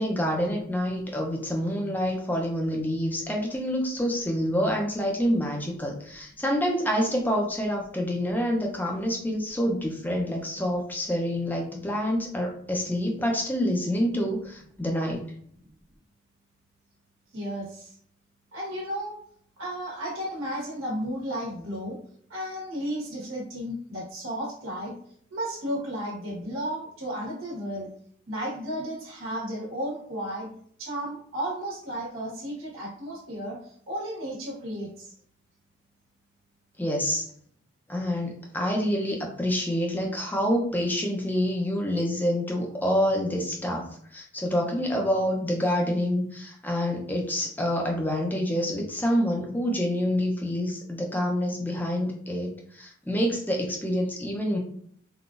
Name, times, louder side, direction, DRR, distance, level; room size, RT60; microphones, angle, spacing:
voice 1, 0.0-15.3 36.8-37.3 37.9-54.6, equal, 10° left, 0 dB, 0.5 m, -27 dB
voice 2, 17.3-17.9 18.5-19.2 19.6-22.0 22.3-24.9 25.3-27.9 28.3-30.5 30.8-35.1, equal, 80° right, -6 dB, 1.3 m, -33 dB
3.8 x 2.4 x 2.5 m, 0.62 s
head